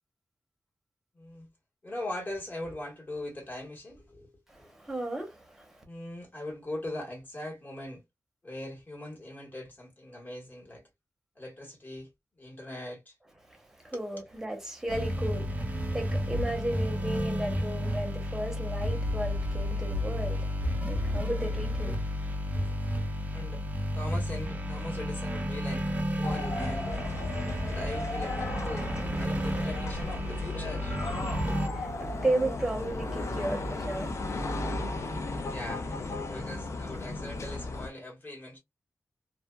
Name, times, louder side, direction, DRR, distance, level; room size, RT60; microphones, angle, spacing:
voice 1, 1.1-1.5 1.8-4.3 4.6-4.7 5.8-8.0 8.4-10.8 11.3-12.1 12.4-13.2 13.9-14.2 22.6-23.7 23.9-25.8 26.2-26.9 27.1-31.0 35.5-38.6, left 1 dB, 35° left, 1.6 m, -41 dB
voice 2, 4.5-5.8 13.5-20.5 20.8-22.0 31.2-34.1, right 1 dB, 5° right, 1.0 m, -34 dB
sound 1, 14.9-31.7, equal, 30° right, 0.6 m, -32 dB
sound 2, 26.2-37.9, left 2 dB, 60° left, 0.6 m, -35 dB
2.7 x 2.3 x 2.2 m
wide cardioid pair, 105°, 5 cm